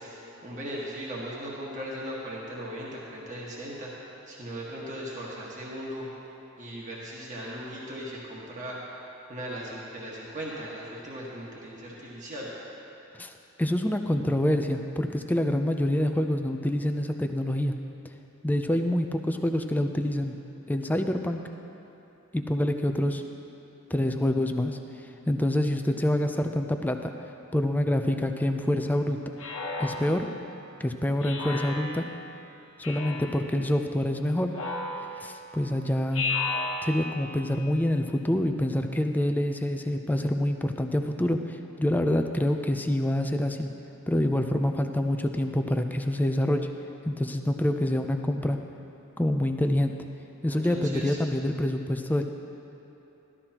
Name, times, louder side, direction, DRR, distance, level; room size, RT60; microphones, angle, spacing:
voice 1, 0.0-3.9 4.3-6.1 6.6-8.8 9.3-12.5 50.5-51.2, equal, 40° right, -5 dB, 1.5 m, -38 dB
voice 2, 13.6-17.7 18.4-20.4 20.7-21.4 22.3-23.2 23.9-24.8 25.3-27.1 27.5-29.2 29.8-30.3 30.8-32.0 32.8-34.5 35.2-36.3 36.8-43.7 44.1-46.7 47.0-48.6 49.2-50.1 50.4-52.2, left 1 dB, 10° left, 5 dB, 0.4 m, -26 dB
Speech synthesizer, 29.4-30.5 31.2-32.2 32.8-33.5 34.5-35.4 36.1-37.3, left 3 dB, 70° left, 1.1 m, -33 dB
13.5 x 12.5 x 2.9 m, 3.0 s
head